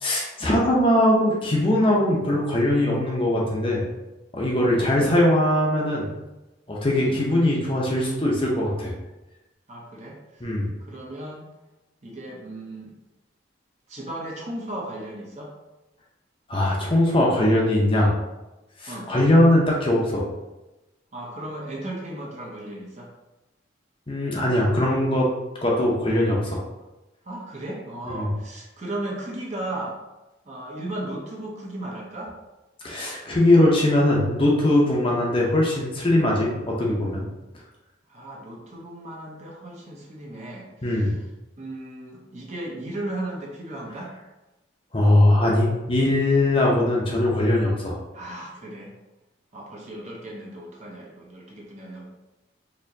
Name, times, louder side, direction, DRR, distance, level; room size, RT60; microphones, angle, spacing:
voice 1, 0.0-3.8 4.3-6.1 6.7-8.9 10.4-10.7 16.5-18.1 18.8-20.3 24.1-25.3 25.6-26.6 28.1-28.3 32.8-37.2 40.8-41.1 44.9-48.0, left 1 dB, 25° left, -3 dB, 0.7 m, -21 dB
voice 2, 4.7-5.1 7.0-7.2 9.7-10.5 10.9-11.5 12.0-12.9 13.9-15.5 18.9-19.1 21.1-23.1 27.3-30.0 30.5-32.3 38.1-41.1 41.6-44.1 48.1-48.9 49.5-52.0, right 1 dB, 35° right, -2 dB, 0.7 m, -36 dB
4.3 x 2.8 x 2.7 m, 1.0 s
head